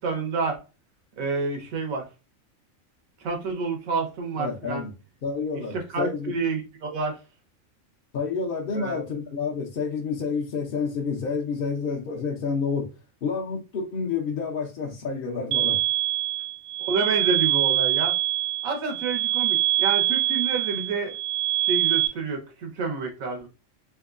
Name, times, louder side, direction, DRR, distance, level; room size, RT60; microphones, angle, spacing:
voice 1, 0.0-0.6 1.2-2.0 3.2-4.9 5.7-7.2 8.7-9.2 16.9-18.1 18.6-21.1 21.7-23.5, right 4 dB, 85° right, 1.4 m, -28 dB
voice 2, 4.4-4.9 5.2-6.3 8.1-12.9 13.2-15.8, left 5 dB, 55° left, 0.7 m, -29 dB
sound 1, 15.5-22.1, right 14 dB, 70° right, 0.8 m, -24 dB
3.5 x 3.0 x 2.4 m
omnidirectional pair, 1.4 m